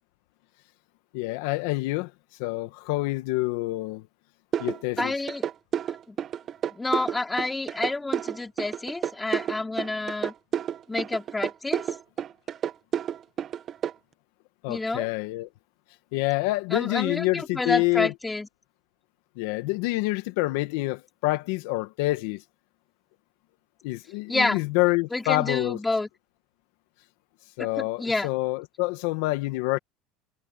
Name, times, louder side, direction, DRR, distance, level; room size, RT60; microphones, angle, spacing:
voice 1, 1.1-2.1 2.4-4.1 4.6-5.1 14.6-15.5 16.1-18.1 19.4-22.4 23.8-25.8 27.6-29.8, left 21 dB, 75° left, 1.6 m, -27 dB
sound 1, 4.5-13.9, right 9 dB, 40° right, 1.2 m, -30 dB
voice 2, 5.0-5.4 6.1-6.2 6.7-10.3 10.9-11.8 14.7-15.1 16.7-18.5 24.3-24.6 25.1-26.1 28.0-28.3, left 2 dB, 10° left, 4.3 m, -28 dB
supercardioid pair, 115°, 0 cm